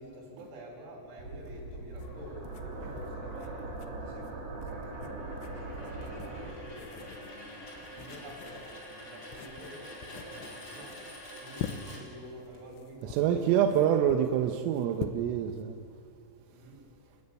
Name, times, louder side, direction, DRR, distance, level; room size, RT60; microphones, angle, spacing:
voice 1, 0.0-7.5 7.9-11.1 11.4-14.0 16.5-16.8, equal, 65° right, 8.9 m, -48 dB
sound 1, 1.2-6.5, right 2 dB, 40° right, 3.7 m, -41 dB
sound 2, 1.4-15.6, left 9 dB, 80° left, 3.4 m, -45 dB
sound 3, 2.0-12.6, equal, 25° left, 4.7 m, -48 dB
voice 2, 13.0-15.8, right 9 dB, 90° right, 3.7 m, -26 dB
30.0 x 14.5 x 9.7 m
omnidirectional pair, 5.7 m